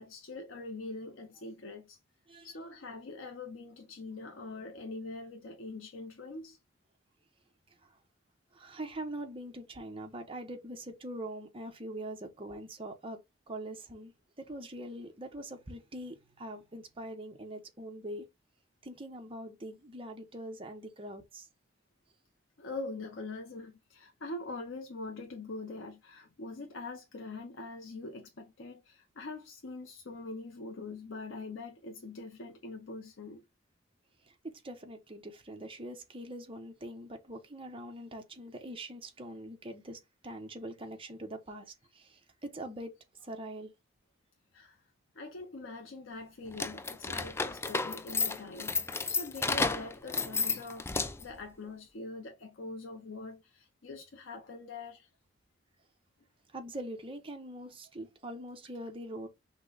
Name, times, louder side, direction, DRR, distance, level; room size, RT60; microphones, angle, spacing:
voice 1, 0.0-2.0 2.4-6.6 22.6-33.4 44.5-44.8 45.1-50.9 51.2-55.1, left 3 dB, 85° left, 0.7 m, -43 dB
voice 2, 8.5-13.2 13.5-14.1 14.4-18.3 18.8-21.5 34.3-42.9 43.2-43.7 56.5-59.3, right 1 dB, 30° right, 0.9 m, -43 dB
sound 1, 46.5-51.4, left 4 dB, 15° left, 0.3 m, -32 dB
5.9 x 2.2 x 3.9 m
head